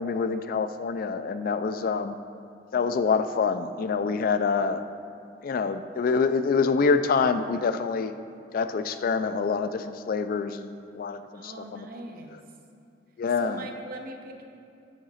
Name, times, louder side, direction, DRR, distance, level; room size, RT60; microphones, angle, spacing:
voice 1, 0.0-2.2 2.7-4.9 5.4-8.1 8.5-11.8 13.2-13.6, left 5 dB, 55° left, 11 dB, 0.3 m, -26 dB
voice 2, 11.3-12.4 13.4-14.4, right 1 dB, 55° right, 2 dB, 0.8 m, -41 dB
6.2 x 5.0 x 5.6 m, 2.5 s
head